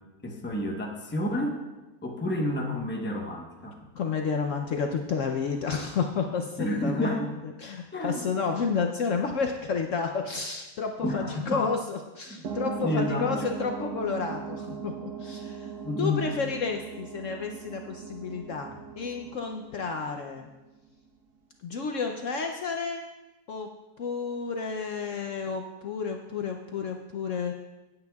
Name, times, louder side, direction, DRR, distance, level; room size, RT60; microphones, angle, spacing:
voice 1, 0.2-1.6 2.0-3.8 6.6-7.3 7.9-8.5 11.0-11.7 12.3-13.5 15.8-16.3, left 1 dB, 10° left, 1 dB, 0.8 m, -30 dB
voice 2, 3.9-7.3 7.6-15.7 16.0-20.5 21.6-23.0 23.5-23.7 24.0-27.5, left 5 dB, 60° left, 3 dB, 0.9 m, -31 dB
sound 1, 12.4-20.6, right 6 dB, 80° right, 1.7 m, -39 dB
17.0 x 8.8 x 2.3 m, 1.1 s
omnidirectional pair, 1.7 m